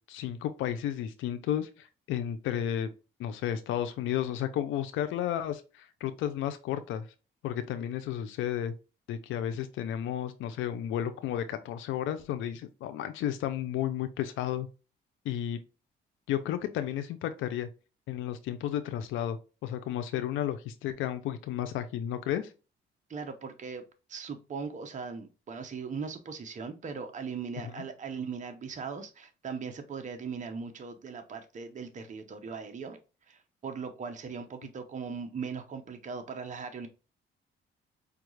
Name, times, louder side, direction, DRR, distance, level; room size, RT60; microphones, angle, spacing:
voice 1, 0.1-2.9 3.2-7.1 7.4-8.7 9.1-14.7 15.2-15.6 16.3-17.7 18.1-22.5 27.6-27.7, left 10 dB, 85° left, 0.4 m, -33 dB
voice 2, 23.1-23.8 24.1-33.0 33.3-36.9, right 5 dB, 40° right, 0.7 m, -39 dB
5.0 x 2.3 x 3.1 m
cardioid pair, 90°, 20 cm